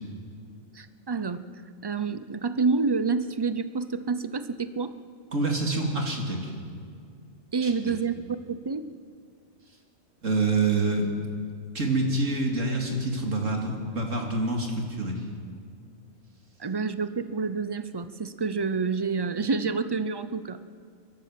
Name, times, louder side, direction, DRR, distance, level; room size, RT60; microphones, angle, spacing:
voice 1, 0.7-1.4 1.8-4.9 7.5-8.2 8.5-8.8 16.6-20.6, right 4 dB, 30° right, 12 dB, 0.4 m, -28 dB
voice 2, 5.3-6.5 7.6-7.7 10.2-11.1 11.7-15.2, right 2 dB, 65° right, 1 dB, 3.0 m, -26 dB
30.0 x 12.5 x 7.7 m, 2.2 s
omnidirectional pair, 1.4 m